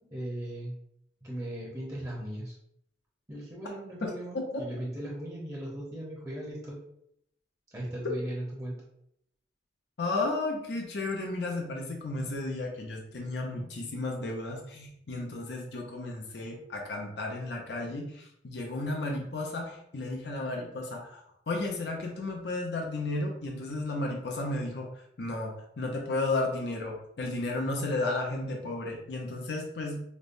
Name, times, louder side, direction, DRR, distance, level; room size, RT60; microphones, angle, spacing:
voice 1, 0.1-0.8 1.2-2.5 3.3-6.8 7.7-8.8, right 1 dB, 20° right, -5 dB, 0.7 m, -38 dB
voice 2, 10.0-24.9 25.2-30.0, left 2 dB, 75° left, 0 dB, 0.6 m, -33 dB
5.2 x 2.1 x 2.5 m, 0.74 s
head